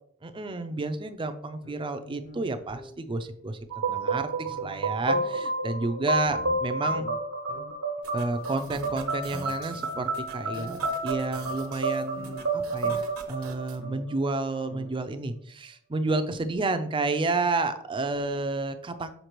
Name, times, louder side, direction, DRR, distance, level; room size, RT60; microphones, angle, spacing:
voice 1, 0.2-3.6 3.9-7.1 8.1-19.1, right 3 dB, 25° right, 9 dB, 0.5 m, -30 dB
sound 1, 1.6-2.9 3.6-3.7 3.9-4.2 4.5-5.4 6.3-7.2 7.5-7.7 8.7-10.2 10.5-10.8 12.2-12.4 12.8-13.1 13.8-14.1 14.7-14.9 15.3-15.4 16.5-16.6, left 1 dB, 50° left, 1.4 m, -44 dB
sound 2, 3.7-14.4, right 2 dB, 85° right, 1.2 m, -30 dB
sound 3, 8.0-13.8, right 5 dB, 70° right, 0.9 m, -47 dB
6.6 x 5.1 x 3.0 m, 0.64 s
head